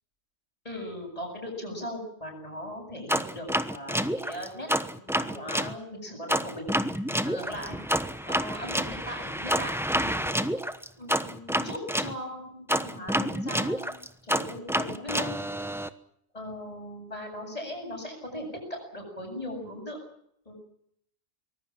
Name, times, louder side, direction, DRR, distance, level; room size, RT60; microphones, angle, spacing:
voice 1, 0.6-6.7 7.2-7.8 8.3-10.4 11.0-14.0 14.2-15.4 16.3-20.0 20.5-20.6, left 1 dB, 30° left, 2 dB, 7.8 m, -38 dB
sound 1, 3.1-5.7 6.3-12.1 12.7-15.9, equal, ahead, 1.0 m, -28 dB
24.0 x 21.0 x 7.5 m, 0.70 s
omnidirectional pair, 1.3 m